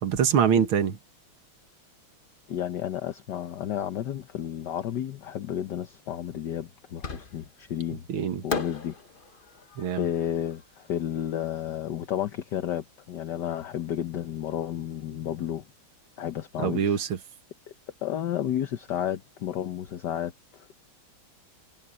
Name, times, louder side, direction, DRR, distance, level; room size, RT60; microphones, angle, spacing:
voice 1, 0.0-1.0 8.1-8.5 9.8-10.1 16.6-17.2, right 8 dB, 80° right, 2.3 m, -24 dB
voice 2, 2.5-8.1 8.4-8.9 10.0-15.6 16.2-17.0 18.0-20.7, left 10 dB, 60° left, 1.5 m, -32 dB
Fireworks, 7.0-7.7 8.5-11.6, left 4 dB, 30° left, 1.1 m, -37 dB
omnidirectional pair, 2.3 m